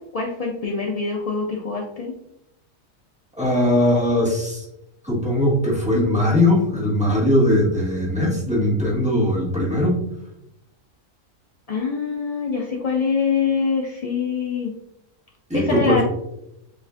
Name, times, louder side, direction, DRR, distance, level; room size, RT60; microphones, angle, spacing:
voice 1, 0.0-2.1 11.7-14.7 15.5-16.0, left 5 dB, 60° left, -1 dB, 0.3 m, -24 dB
voice 2, 3.4-4.6 5.0-10.0 15.5-16.0, left 1 dB, 5° right, -6 dB, 1.2 m, -20 dB
7.1 x 2.5 x 2.4 m, 0.81 s
omnidirectional pair, 1.4 m